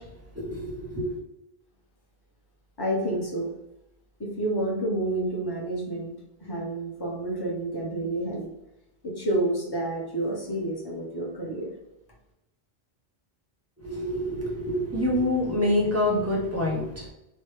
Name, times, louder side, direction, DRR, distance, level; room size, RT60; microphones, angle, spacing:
voice 1, 0.4-1.0 13.8-17.1, left 1 dB, 15° right, -4 dB, 0.8 m, -26 dB
voice 2, 2.8-3.5 4.2-6.1 6.4-8.5 9.0-11.7, right 1 dB, 25° left, -3 dB, 0.9 m, -29 dB
3.1 x 2.2 x 3.2 m, 0.88 s
omnidirectional pair, 1.1 m